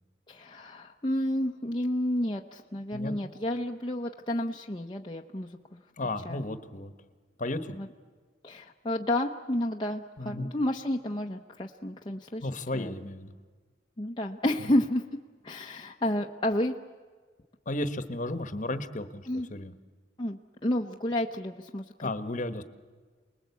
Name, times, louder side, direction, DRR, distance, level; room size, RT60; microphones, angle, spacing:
voice 1, 0.3-5.8 6.2-6.4 7.7-7.9 8.4-12.5 12.7-12.9 14.0-15.0 15.4-16.7 19.3-19.5 20.2-21.8, left 1 dB, 25° left, 0 dB, 0.9 m, -30 dB
voice 2, 6.0-6.9 7.4-7.8 10.2-10.5 12.4-13.3 17.7-19.7 22.0-22.6, left 2 dB, 45° left, 11 dB, 1.3 m, -34 dB
28.5 x 20.5 x 8.3 m, 1.5 s
head